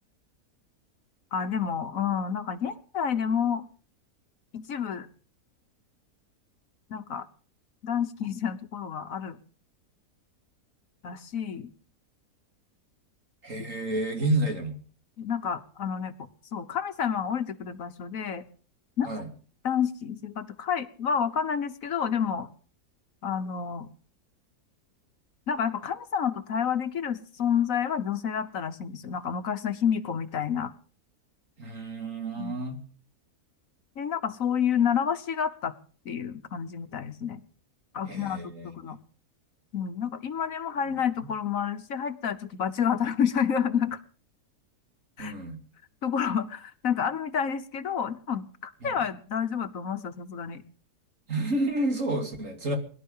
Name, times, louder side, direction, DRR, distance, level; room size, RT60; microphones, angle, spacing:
voice 1, 1.3-3.6 4.5-5.1 6.9-7.3 7.8-9.4 11.0-11.7 14.1-14.3 15.2-16.1 16.5-18.4 19.0-19.1 19.6-22.5 23.2-23.9 25.5-30.7 32.4-32.6 34.0-35.7 36.0-37.4 37.9-39.0 39.7-44.0 45.2-45.3 46.0-50.6, left 7 dB, 60° left, 10 dB, 1.3 m, -29 dB
voice 2, 13.4-14.8 19.0-19.3 31.6-32.8 38.1-39.0 41.2-41.3 45.2-45.6 48.8-48.9 51.3-52.8, right 2 dB, 55° right, 4 dB, 3.2 m, -30 dB
22.0 x 11.5 x 5.5 m, 0.42 s
omnidirectional pair, 1.6 m